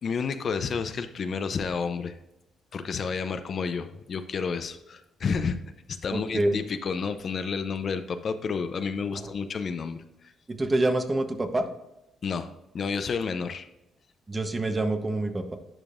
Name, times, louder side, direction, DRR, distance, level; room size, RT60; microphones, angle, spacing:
voice 1, 0.0-2.1 2.7-5.6 5.9-10.0 12.2-12.5 12.7-13.7, left 5 dB, 50° left, 9 dB, 0.6 m, -30 dB
voice 2, 6.1-6.6 9.2-9.3 10.5-11.6 14.3-15.6, right 2 dB, 25° right, 7 dB, 1.0 m, -26 dB
10.5 x 5.1 x 2.5 m, 0.91 s
cardioid pair, 90°, 0 cm